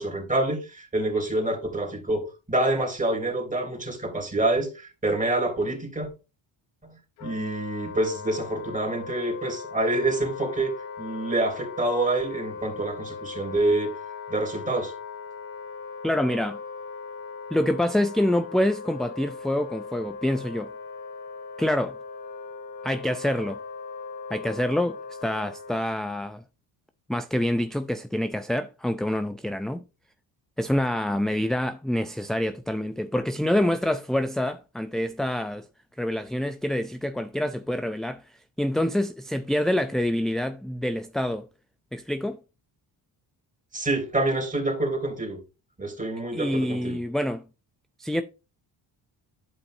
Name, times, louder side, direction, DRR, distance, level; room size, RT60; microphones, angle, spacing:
voice 1, 0.0-6.1 6.8-13.9 14.3-14.9 43.7-45.4 45.8-47.0, right 2 dB, 15° right, 3.1 m, -27 dB
Wind instrument woodwind instrument, 7.2-25.8, left 5 dB, 90° left, 1.7 m, -39 dB
voice 2, 16.0-16.6 17.5-20.7 21.6-22.0 22.8-23.6 24.3-26.4 27.1-29.8 30.6-35.7 36.0-38.2 38.6-41.5 41.9-42.4 46.3-47.4 48.0-48.2, left 1 dB, ahead, 0.3 m, -26 dB
11.5 x 5.2 x 2.6 m
supercardioid pair, 65°, 49 cm